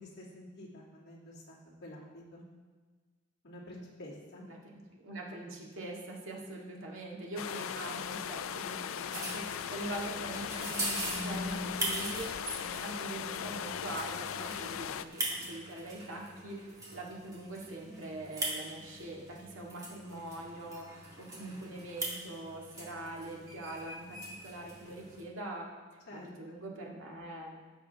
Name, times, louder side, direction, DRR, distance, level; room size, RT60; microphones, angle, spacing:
voice 1, 0.0-2.4 3.4-4.5 14.4-14.8 26.1-26.6, left 1 dB, 55° left, -6 dB, 2.6 m, -49 dB
voice 2, 4.9-25.7 26.1-27.6, right 2 dB, 70° right, -2 dB, 2.1 m, -43 dB
sound 1, 7.4-15.0, left 8 dB, 75° left, 0.4 m, -38 dB
sound 2, 9.1-25.2, right 1 dB, 20° right, 2.1 m, -41 dB
15.5 x 7.5 x 3.5 m, 1.4 s
head